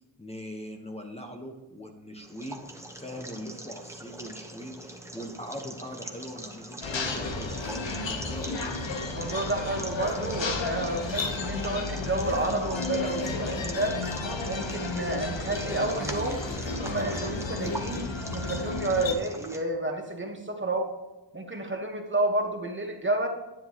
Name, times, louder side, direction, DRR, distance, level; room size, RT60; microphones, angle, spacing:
voice 1, 0.2-8.6, equal, 15° left, 2 dB, 1.3 m, -41 dB
sound 1, 2.2-19.6, right 1 dB, 5° right, 1.1 m, -43 dB
sound 2, 6.8-19.1, left 3 dB, 70° left, 1.3 m, -32 dB
voice 2, 9.1-14.0 14.5-16.5 16.8-20.9 21.3-23.3, right 2 dB, 25° right, 3 dB, 1.4 m, -30 dB
10.5 x 9.2 x 3.1 m, 1.1 s
cardioid pair, 80°, 47 cm